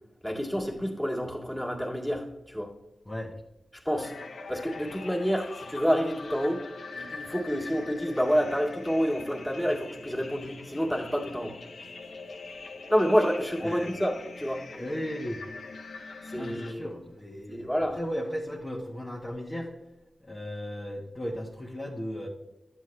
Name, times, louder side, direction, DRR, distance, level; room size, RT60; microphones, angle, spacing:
voice 1, 0.2-2.7 3.7-4.1 4.5-6.6 6.9-11.6 12.9-14.6 16.3-16.9 17.5-18.0, equal, 5° left, -1 dB, 1.9 m, -28 dB
sound 1, 4.0-16.7, left 3 dB, 85° left, 0.8 m, -43 dB
voice 2, 14.7-15.4 16.3-19.7 20.2-22.3, equal, 25° left, -3 dB, 1.2 m, -36 dB
11.0 x 7.6 x 3.2 m, 0.93 s
cardioid pair, 70°, 0 cm